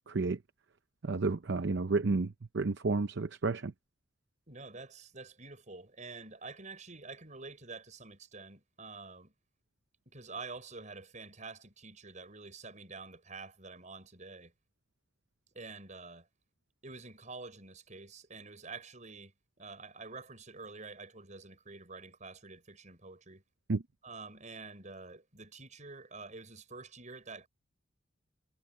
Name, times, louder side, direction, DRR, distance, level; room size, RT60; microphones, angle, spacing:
voice 1, 0.1-0.4 1.0-3.7 23.7-23.8, right 3 dB, 60° right, 0.7 m, -31 dB
voice 2, 4.5-9.3 10.1-14.5 15.5-16.3 16.8-23.4 24.0-27.5, right 3 dB, 40° right, 6.0 m, -48 dB
head